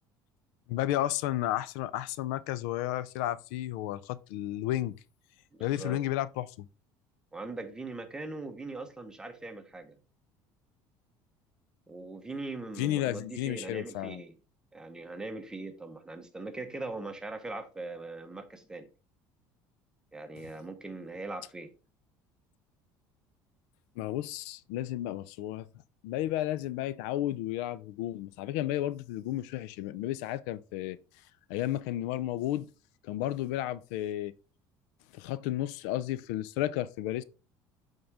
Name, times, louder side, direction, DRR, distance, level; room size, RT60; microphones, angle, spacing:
voice 1, 0.7-5.0 5.6-6.7 12.8-14.2 24.0-25.7 26.0-31.0 31.5-32.7 33.0-34.3 35.1-37.2, left 14 dB, 90° left, 0.4 m, -32 dB
voice 2, 5.6-6.0 7.3-10.0 11.9-14.4 14.7-18.9 20.1-21.7, right 2 dB, 10° right, 0.9 m, -41 dB
7.8 x 3.7 x 3.4 m
cardioid pair, 120°, 9 cm